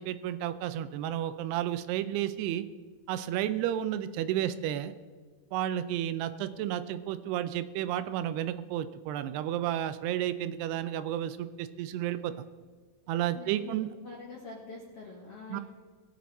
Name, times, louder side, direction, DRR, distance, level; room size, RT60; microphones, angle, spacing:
voice 1, 0.0-2.6 3.1-4.9 5.5-12.3 13.1-13.9 15.5-15.6, right 12 dB, 85° right, 12 dB, 2.6 m, -32 dB
voice 2, 13.3-15.6, left 3 dB, 60° left, -3 dB, 1.6 m, -45 dB
19.5 x 7.7 x 4.1 m, 1.5 s
omnidirectional pair, 4.7 m